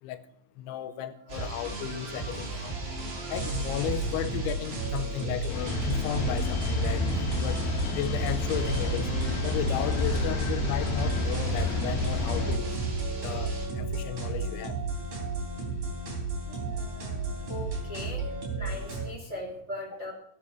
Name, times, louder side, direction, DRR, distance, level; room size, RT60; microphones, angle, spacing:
voice 1, 0.6-2.7 3.3-7.1 7.4-9.1 9.4-12.7 13.2-14.8, left 12 dB, 85° left, 11 dB, 3.1 m, -34 dB
sound 1, 1.3-13.7, right 3 dB, 75° right, 6.4 m, -36 dB
sound 2, 3.3-19.1, right 3 dB, 45° right, 4.5 m, -33 dB
sound 3, 5.5-12.6, left 4 dB, 60° left, 3.3 m, -31 dB
voice 2, 16.5-17.2 17.5-18.2 18.6-20.1, left 1 dB, 20° right, -1 dB, 2.0 m, -39 dB
16.5 x 8.3 x 6.2 m, 0.72 s
omnidirectional pair, 5.3 m